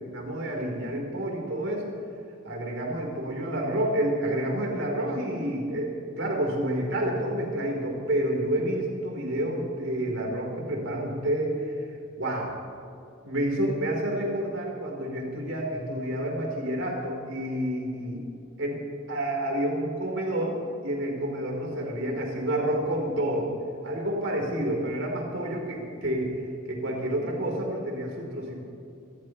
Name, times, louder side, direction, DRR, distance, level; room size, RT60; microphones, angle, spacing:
voice 1, 0.0-2.0 2.4-11.7 12.2-12.6 13.2-18.3 18.6-18.8 19.1-23.5 23.8-26.4 26.7-28.6, right 1 dB, 85° right, -1 dB, 4.7 m, -29 dB
27.0 x 14.5 x 3.4 m, 2.6 s
head